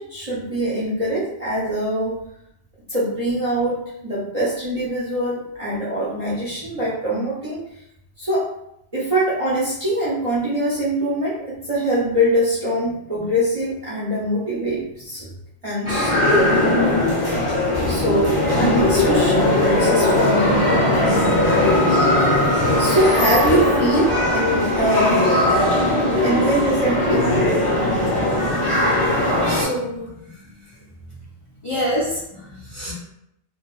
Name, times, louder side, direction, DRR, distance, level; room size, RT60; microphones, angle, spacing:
voice 1, 0.0-2.2 2.9-7.6 8.2-8.5 8.9-15.3 15.6-16.7 17.9-19.5 19.7-20.7 22.8-25.4 26.2-27.3 29.7-29.8, right 1 dB, 40° right, -9 dB, 0.5 m, -23 dB
sound 1, 15.8-29.6, left 1 dB, 25° left, 0.9 m, -19 dB
voice 2, 29.2-30.1 31.6-32.9, equal, 45° left, -8 dB, 0.4 m, -27 dB
2.6 x 2.3 x 2.3 m, 0.79 s
omnidirectional pair, 1.3 m